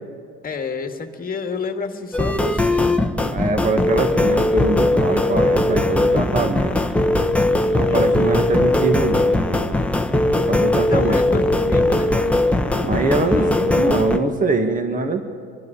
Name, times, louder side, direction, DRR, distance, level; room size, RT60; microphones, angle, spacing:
voice 1, 0.4-3.0 7.7-8.3 10.9-12.2 13.2-13.6, left 5 dB, 30° left, 5 dB, 2.0 m, -30 dB
sound 1, 2.1-14.2, left 1 dB, 5° left, 1.2 m, -19 dB
voice 2, 3.3-6.7 7.7-9.4 10.5-11.2 12.7-15.2, right 3 dB, 25° right, 6 dB, 1.9 m, -23 dB
25.5 x 11.5 x 9.9 m, 2.2 s
hypercardioid pair, 80°, 31 cm